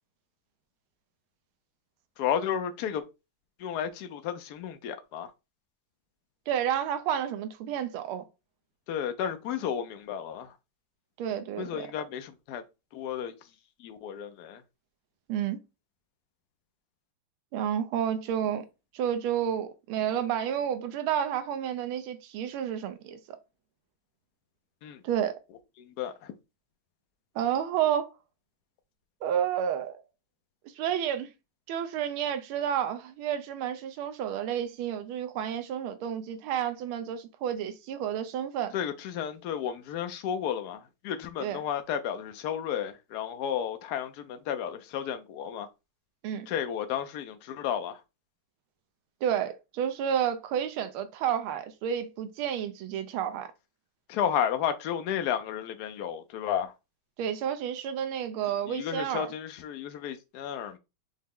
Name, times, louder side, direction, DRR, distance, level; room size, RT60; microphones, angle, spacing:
voice 1, 2.2-3.0 3.6-5.3 8.9-10.5 11.6-12.6 12.9-13.3 13.8-14.6 24.8-25.0 25.8-26.3 38.7-45.7 46.5-48.0 54.1-56.7 58.7-60.8, left 9 dB, 80° left, 0.9 m, -32 dB
voice 2, 6.5-8.2 11.2-11.9 15.3-15.6 17.5-18.6 18.9-23.4 25.0-25.4 27.3-28.1 29.2-30.0 30.8-31.3 31.7-38.7 41.4-41.6 46.2-46.5 49.2-53.5 57.2-59.3, right 9 dB, 80° right, 1.5 m, -30 dB
5.7 x 2.1 x 3.6 m
omnidirectional pair, 2.3 m